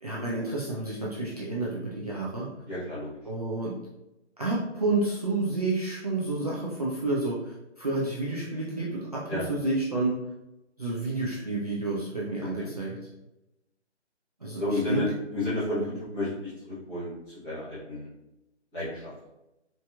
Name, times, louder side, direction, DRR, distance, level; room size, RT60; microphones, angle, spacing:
voice 1, 0.0-2.5 3.3-3.7 4.4-10.2 10.8-13.0 14.4-15.0, right 2 dB, 35° right, -6 dB, 0.4 m, -30 dB
voice 2, 2.7-3.1 9.3-9.4 12.6-12.7 14.6-15.1 15.3-17.2 17.4-18.1 18.7-19.1, left 1 dB, 10° left, -14 dB, 1.0 m, -31 dB
4.4 x 2.6 x 2.2 m, 0.93 s
figure-of-eight pair, 160°, 36 cm